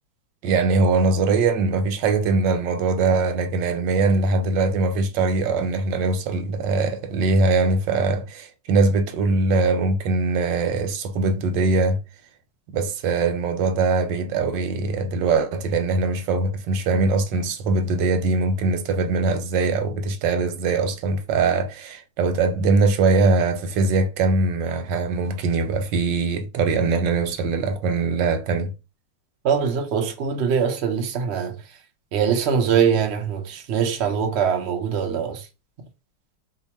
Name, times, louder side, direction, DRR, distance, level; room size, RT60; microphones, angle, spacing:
voice 1, 0.4-12.0 12.7-28.7, right 3 dB, 90° right, 1.4 m, -22 dB
voice 2, 29.4-31.6 32.1-35.5, right 7 dB, 65° right, 0.6 m, -22 dB
2.9 x 2.4 x 4.2 m
omnidirectional pair, 1.9 m